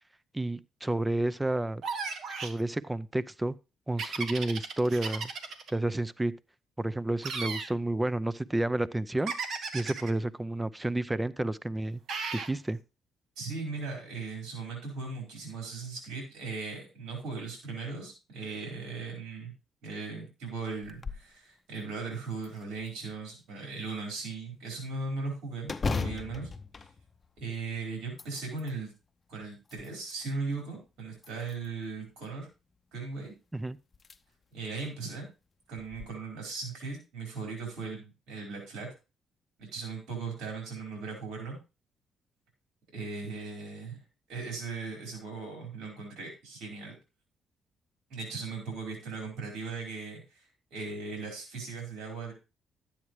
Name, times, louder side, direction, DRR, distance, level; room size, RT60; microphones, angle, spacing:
voice 1, 0.3-1.8 2.4-3.5 3.9-5.3 5.7-6.3 6.8-9.3 9.7-12.0 12.3-12.8 33.5-33.8, right 1 dB, 15° right, 0.5 m, -30 dB
sound 1, 1.8-2.6 4.0-5.7 7.2-7.7 9.3-10.1 12.1-12.5, right 5 dB, 65° right, 1.6 m, -35 dB
voice 2, 13.4-19.5 19.8-26.5 26.8-26.9 27.4-28.9 29.3-32.5 32.9-33.3 34.5-35.3 35.7-38.9 39.6-41.6 42.9-44.0 44.3-47.0 48.1-50.5 50.7-52.3, right 4 dB, 85° right, 4.7 m, -38 dB
sound 2, 20.8-21.3 21.8-21.9 22.4-23.2 25.6-27.6 28.0-28.8 29.4-30.3 31.2-31.8 33.3-33.4 33.9-34.2 34.6-34.7 35.8-36.1, left 4 dB, 30° left, 0.7 m, -37 dB
12.0 x 8.7 x 3.2 m
cardioid pair, 90°, 0 cm